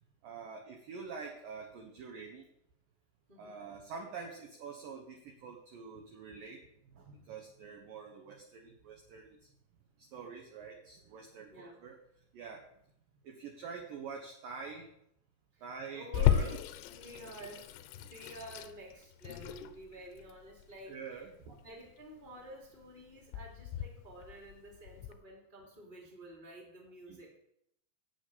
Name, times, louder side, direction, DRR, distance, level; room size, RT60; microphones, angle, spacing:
voice 1, 0.2-2.5 3.4-9.4 10.0-12.0 12.3-12.7 13.2-14.9 15.6-16.6 20.9-21.6 27.1-27.2, right 5 dB, 75° right, 2 dB, 2.1 m, -46 dB
voice 2, 3.3-3.6 11.5-11.8 15.5-16.6 16.9-27.4, right 1 dB, 15° right, -2 dB, 2.3 m, -51 dB
Water tap faucet / Sink (filling or washing), 16.1-25.1, left 10 dB, 85° left, 3.3 m, -35 dB
11.0 x 6.4 x 8.7 m, 0.75 s
omnidirectional pair, 5.8 m